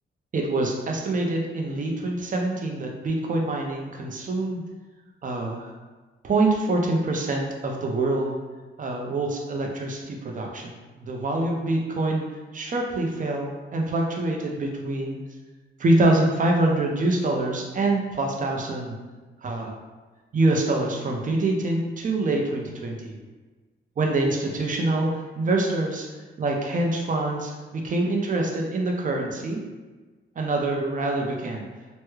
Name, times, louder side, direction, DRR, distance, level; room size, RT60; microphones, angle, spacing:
voice 1, 0.3-4.6 5.2-5.7 6.2-8.4 8.8-12.3 12.5-15.2 15.8-19.0 19.4-19.7 20.3-23.2 24.0-26.1 26.4-29.6 30.4-31.7, right 2 dB, 40° right, 1 dB, 0.6 m, -25 dB
3.4 x 2.1 x 3.1 m, 1.3 s
wide cardioid pair, 115°, 21 cm